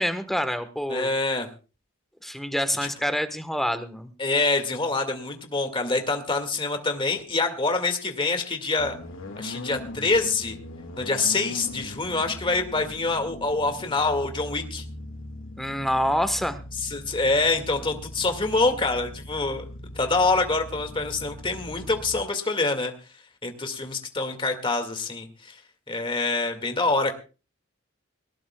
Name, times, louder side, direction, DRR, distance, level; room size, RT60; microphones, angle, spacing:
voice 1, 0.0-1.1 2.2-4.1 15.6-16.6, equal, ahead, 9 dB, 1.3 m, -26 dB
voice 2, 0.9-1.5 2.8-2.9 4.2-8.9 9.4-10.6 11.0-14.8 16.8-19.6 20.0-22.9 23.4-25.6 25.9-27.2, left 3 dB, 25° left, 6 dB, 2.0 m, -25 dB
sound 1, 8.8-22.2, left 1 dB, 65° left, 2.1 m, -40 dB
20.0 x 19.0 x 2.3 m, 0.34 s
head